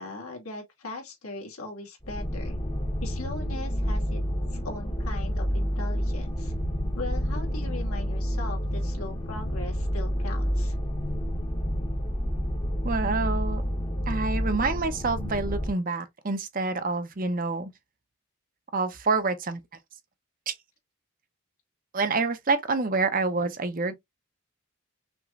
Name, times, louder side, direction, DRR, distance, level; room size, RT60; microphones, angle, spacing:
voice 1, 0.0-2.6 3.0-4.2 4.5-6.5 7.0-10.8, left 2 dB, 80° left, 2.4 m, -39 dB
sound 1, 2.0-15.7, equal, 25° left, 1.0 m, -29 dB
voice 2, 12.8-13.6 14.1-17.7 18.7-19.6 20.5-20.6 21.9-23.9, right 3 dB, 40° right, 0.7 m, -27 dB
6.0 x 3.0 x 2.4 m
head